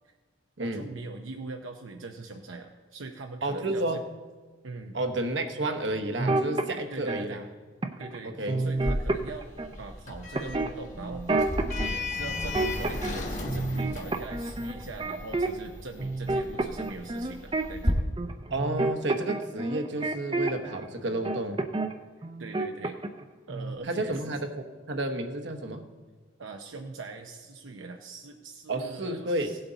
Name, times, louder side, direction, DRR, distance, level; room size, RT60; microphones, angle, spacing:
voice 1, 0.6-3.8 4.6-5.0 6.9-7.4 8.0-11.5 11.8-18.0 22.2-23.0 23.5-24.2 26.4-29.6, right 3 dB, 85° right, 3 dB, 0.7 m, -42 dB
voice 2, 3.4-4.0 4.9-7.5 8.2-8.7 18.5-21.7 23.8-25.9 28.7-29.6, right 2 dB, 65° right, 6 dB, 1.0 m, -31 dB
sound 1, 6.2-7.2 7.8-8.2 8.5-9.7 10.3-11.9 12.2-13.2 13.5-15.7 16.0-20.9 21.2-21.9 22.2-23.2 23.5-23.8, right 2 dB, 25° right, 0.5 m, -29 dB
Sliding door, 8.8-17.9, left 1 dB, 40° left, 1.4 m, -35 dB
16.5 x 7.9 x 4.0 m, 1.4 s
head